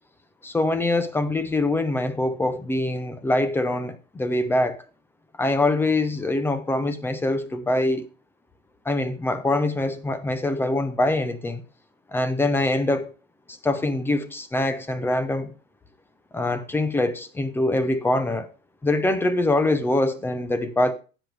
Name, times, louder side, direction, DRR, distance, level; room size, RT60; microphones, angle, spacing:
voice 1, 0.4-4.8 5.4-8.1 8.9-11.6 12.1-13.1 13.5-15.5 16.3-18.5 18.8-20.9, left 2 dB, 5° left, 0.4 m, -24 dB
9.9 x 7.9 x 3.2 m
supercardioid pair, 135°, 40 cm